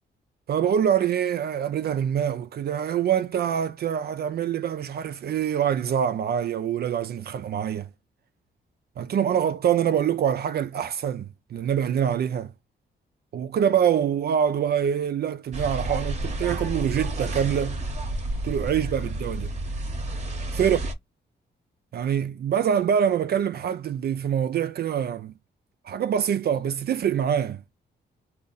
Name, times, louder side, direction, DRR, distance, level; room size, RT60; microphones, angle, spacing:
voice 1, 0.5-7.9 9.0-12.5 13.3-17.8 18.4-19.5 20.5-20.8 21.9-25.3 25.8-27.6, right 8 dB, 55° right, 0.4 m, -25 dB
sound 1, 15.5-20.9, right 1 dB, 35° right, 0.8 m, -30 dB
2.6 x 2.4 x 3.8 m
cardioid pair, 70°, 19 cm